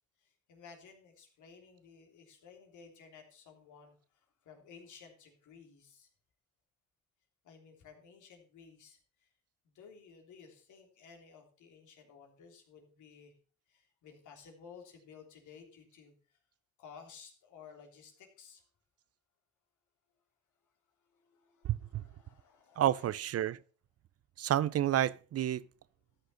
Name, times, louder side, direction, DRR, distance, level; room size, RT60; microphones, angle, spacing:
voice 1, 0.2-6.1 7.4-9.3 9.6-13.3 13.7-16.4 16.8-18.6 21.0-23.1, left 6 dB, 75° left, 3.3 m, -56 dB
voice 2, 21.6-22.0 22.8-23.6 24.4-25.6, right 11 dB, 55° right, 0.5 m, -30 dB
13.0 x 6.5 x 5.5 m
cardioid pair, 90°, 30 cm